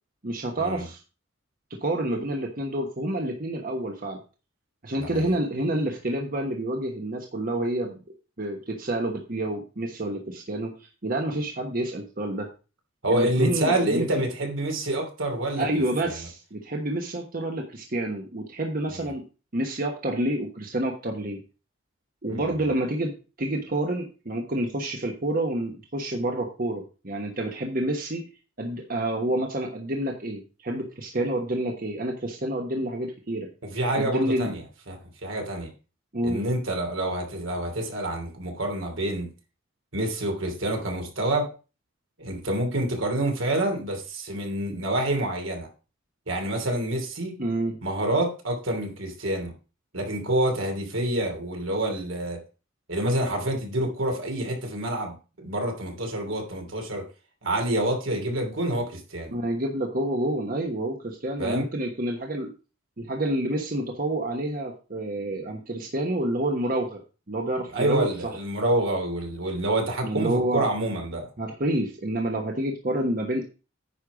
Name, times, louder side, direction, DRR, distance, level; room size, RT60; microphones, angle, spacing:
voice 1, 0.2-1.0 1.7-4.2 4.8-8.0 8.4-12.5 13.1-14.0 15.6-19.2 19.5-21.4 22.2-28.2 28.6-33.5 34.0-34.5 36.1-36.4 47.4-47.8 59.3-62.5 63.0-67.0 67.3-68.3 70.0-70.7 71.4-73.5, right 1 dB, 45° right, 2 dB, 1.2 m, -28 dB
voice 2, 5.0-5.4 13.0-15.7 16.0-16.2 18.9-19.1 22.3-22.7 33.6-34.6 34.9-35.7 36.2-39.3 39.9-41.5 42.2-45.7 46.3-47.4 47.8-49.5 49.9-52.4 52.9-57.0 57.4-59.3 61.4-61.6 67.7-71.3, right 1 dB, 75° right, 3 dB, 2.9 m, -27 dB
9.9 x 5.5 x 4.9 m, 0.33 s
head